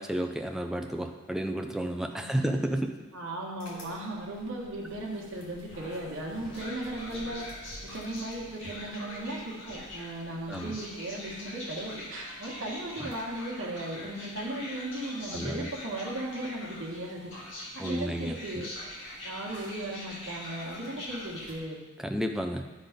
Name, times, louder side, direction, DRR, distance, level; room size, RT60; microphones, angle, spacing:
voice 1, 0.0-2.9 10.5-10.7 13.0-13.1 15.3-15.7 17.8-18.4 22.0-22.6, right 1 dB, ahead, 4 dB, 0.4 m, -31 dB
voice 2, 2.1-2.5 3.1-7.5 7.8-17.3 17.7-18.7 19.2-21.8, right 1 dB, 55° right, -3 dB, 1.5 m, -37 dB
sound 1, 3.6-21.6, left 1 dB, 55° left, 1.9 m, -43 dB
12.0 x 4.0 x 5.1 m, 1.3 s
head